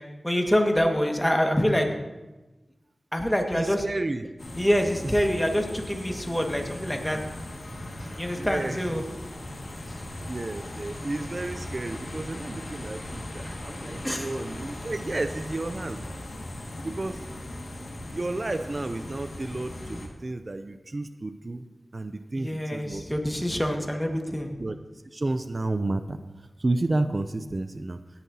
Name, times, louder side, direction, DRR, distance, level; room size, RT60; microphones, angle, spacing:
voice 1, 0.2-1.9 3.1-3.8 4.6-7.2 8.1-9.0 14.0-14.3 22.4-24.6, equal, 10° left, 3 dB, 1.7 m, -25 dB
voice 2, 3.5-4.3 8.0-9.0 9.9-16.1 16.8-17.2 18.1-21.6 21.9-23.0 24.6-24.8 25.1-26.2 26.6-28.0, right 2 dB, 50° right, 10 dB, 0.5 m, -31 dB
sound 1, 4.4-20.1, left 1 dB, 75° left, 1.9 m, -38 dB
17.5 x 9.8 x 2.8 m, 1.1 s
cardioid pair, 50°, 0 cm